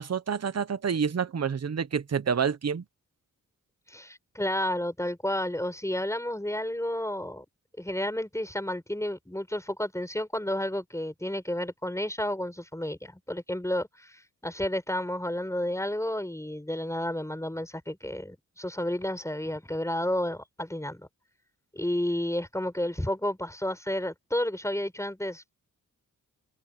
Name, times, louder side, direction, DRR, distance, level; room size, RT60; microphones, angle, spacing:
voice 1, 0.0-2.8, right 6 dB, 50° right, 1.3 m, -28 dB
voice 2, 3.9-7.4 7.8-21.1 21.7-25.4, left 1 dB, 10° left, 7.1 m, -31 dB
cardioid pair, 65°, 33 cm